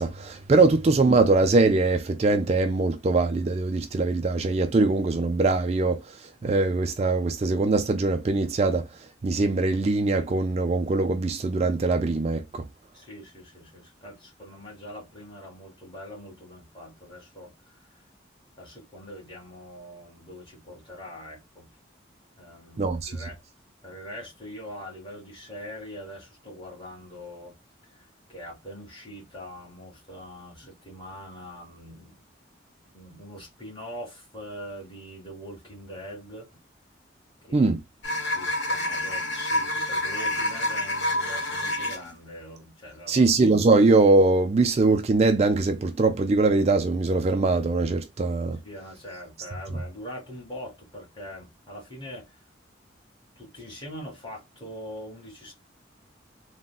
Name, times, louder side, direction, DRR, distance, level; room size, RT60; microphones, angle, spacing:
voice 1, 0.0-8.9 9.2-12.7 22.8-23.1 37.5-37.8 43.1-48.6, right 3 dB, 35° right, 0.3 m, -22 dB
voice 2, 12.9-18.0 18.6-21.7 22.4-23.4 23.8-27.6 27.9-32.2 32.9-36.5 37.4-37.7 38.2-43.3 48.6-52.4 53.4-55.5, equal, 25° left, 1.9 m, -42 dB
sound 1, 38.0-42.1, left 1 dB, 65° left, 1.2 m, -28 dB
3.7 x 2.2 x 2.3 m
head